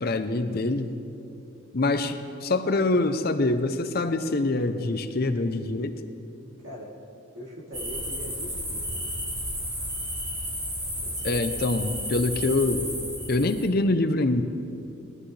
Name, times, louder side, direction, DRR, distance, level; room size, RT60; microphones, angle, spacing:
voice 1, 0.0-1.0 1.7-6.0 11.2-12.9 13.3-14.4, left 2 dB, 45° left, 9 dB, 0.6 m, -25 dB
voice 2, 7.3-9.1 10.9-11.6, equal, 60° right, -4 dB, 2.9 m, -42 dB
sound 1, 7.7-13.7, equal, 25° right, 3.0 m, -32 dB
20.0 x 13.0 x 3.3 m, 2.7 s
head